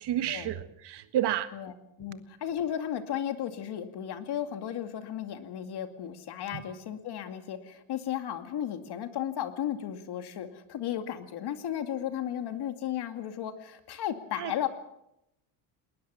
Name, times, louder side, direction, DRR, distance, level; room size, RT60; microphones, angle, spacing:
voice 1, 0.0-1.5 6.5-6.6 14.4-14.5, right 11 dB, 60° right, 10 dB, 1.7 m, -30 dB
voice 2, 1.5-14.7, left 10 dB, 55° left, 8 dB, 2.4 m, -34 dB
20.0 x 20.0 x 7.0 m, 0.83 s
cardioid pair, 120°, 46 cm